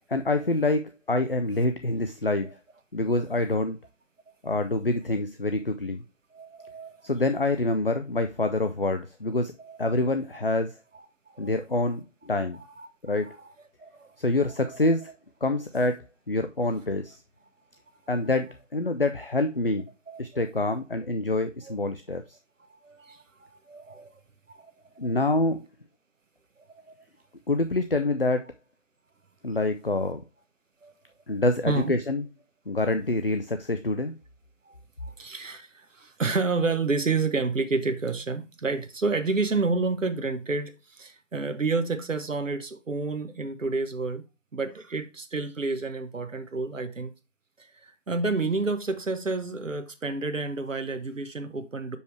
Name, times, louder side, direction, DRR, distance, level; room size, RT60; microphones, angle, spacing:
voice 1, 0.1-2.5 2.9-3.8 4.4-6.0 7.0-9.5 9.8-10.8 11.4-12.6 13.0-13.3 14.2-15.0 15.4-17.2 18.1-19.9 20.2-22.4 25.0-25.6 27.5-28.5 29.4-30.2 31.3-32.2 32.7-34.1, left 2 dB, 50° left, 0.5 m, -26 dB
voice 2, 6.3-7.1 8.4-8.5 9.6-10.0 10.9-11.6 12.8-13.3 13.8-14.2 14.6-15.0 20.1-20.4 21.6-21.7 22.7-24.2 24.5-24.7 25.0-25.2 26.6-27.1 30.8-30.9 31.7-31.9 34.6-44.2 44.5-47.1 47.6-52.0, right 3 dB, 80° right, 1.0 m, -30 dB
6.4 x 5.3 x 3.3 m
figure-of-eight pair, 170°, 38 cm